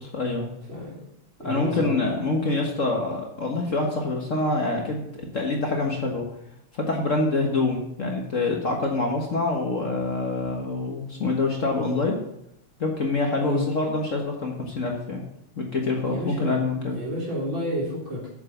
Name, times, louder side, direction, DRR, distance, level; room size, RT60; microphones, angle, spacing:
voice 1, 0.1-0.5 1.4-6.2 6.7-12.2 12.8-15.2 15.6-17.0, left 3 dB, 40° left, 1 dB, 1.5 m, -26 dB
voice 2, 0.7-1.0 1.4-2.0 13.4-13.6 16.1-16.5 16.9-18.4, equal, 65° right, -4 dB, 4.4 m, -30 dB
8.1 x 7.5 x 7.1 m, 0.79 s
omnidirectional pair, 2.3 m